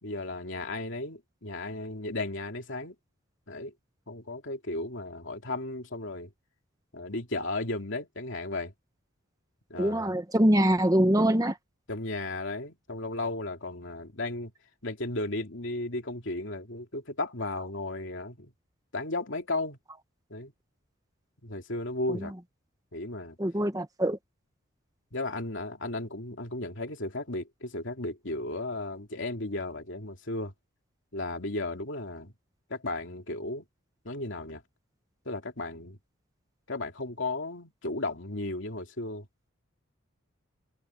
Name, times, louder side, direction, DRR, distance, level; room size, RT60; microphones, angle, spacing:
voice 1, 0.0-2.9 3.5-3.7 4.1-6.3 6.9-8.7 9.7-10.1 11.9-14.5 14.8-18.5 18.9-19.8 20.3-20.5 21.4-22.3 22.9-23.4 25.1-30.5 31.1-32.3 32.7-33.6 34.0-34.6 35.2-36.0 36.7-39.3, left 2 dB, 60° left, 2.9 m, -35 dB
voice 2, 9.8-11.5 23.4-24.2, right 1 dB, 15° right, 1.1 m, -23 dB
head